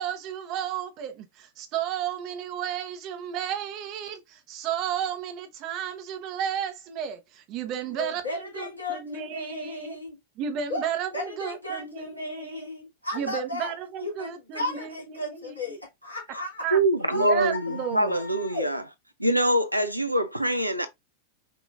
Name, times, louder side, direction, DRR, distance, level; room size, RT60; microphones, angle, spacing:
voice 1, 0.0-10.0 10.4-12.7 13.1-15.6 16.6-16.8 17.1-18.2, right 9 dB, 40° right, 0.9 m, -33 dB
voice 2, 7.9-10.2 10.7-10.8 11.1-13.7 14.0-16.6 17.0-18.7, left 1 dB, 85° left, 2.7 m, -35 dB
voice 3, 16.7-18.8 19.2-20.9, right 1 dB, 90° right, 0.6 m, -24 dB
5.3 x 2.9 x 2.5 m
figure-of-eight pair, 90°, 0 cm